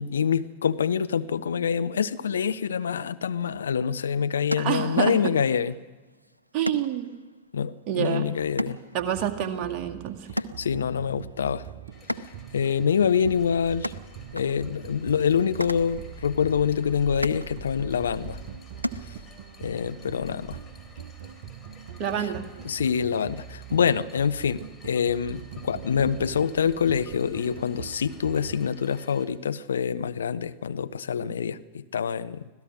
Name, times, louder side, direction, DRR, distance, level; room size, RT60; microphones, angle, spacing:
voice 1, 0.0-5.8 7.5-8.8 10.3-11.7 12.5-13.9 14.3-18.4 19.6-20.6 22.2-22.3 22.6-32.5, left 7 dB, 70° left, 13 dB, 0.7 m, -26 dB
sound 1, 3.6-19.7, equal, 85° right, 0.6 m, -39 dB
voice 2, 4.6-5.1 6.5-7.1 7.9-8.3 8.9-10.3 22.0-22.5, right 10 dB, 40° right, 5 dB, 2.0 m, -27 dB
sound 2, 9.0-28.6, right 9 dB, 55° right, 1.1 m, -43 dB
sound 3, 11.9-29.3, left 2 dB, 15° left, 3.7 m, -49 dB
25.5 x 16.5 x 6.3 m, 1.3 s
figure-of-eight pair, 90°, 0 cm